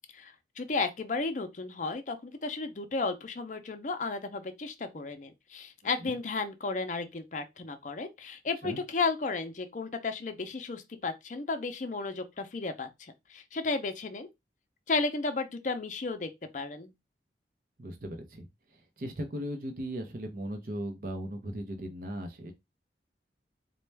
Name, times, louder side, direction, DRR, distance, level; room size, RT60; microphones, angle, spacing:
voice 1, 0.2-14.3 14.9-16.9, left 3 dB, 45° left, 0.5 m, -33 dB
voice 2, 17.8-22.5, right 1 dB, 50° right, 0.6 m, -38 dB
4.1 x 2.2 x 3.3 m
head